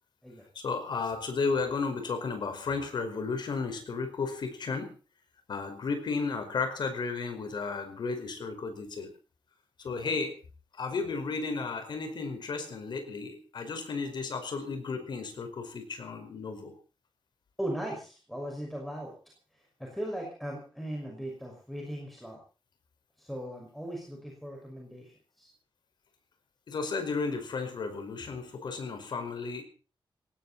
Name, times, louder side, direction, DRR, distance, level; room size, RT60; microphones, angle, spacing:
voice 1, 0.5-4.9 5.5-9.1 9.8-10.4 10.8-16.7 26.7-29.6, left 4 dB, 60° left, 7 dB, 5.1 m, -33 dB
voice 2, 17.6-19.1 19.5-22.4 23.2-25.5, right 1 dB, ahead, 0 dB, 5.9 m, -38 dB
19.0 x 18.0 x 4.3 m, 0.37 s
wide cardioid pair, 140°, 9 cm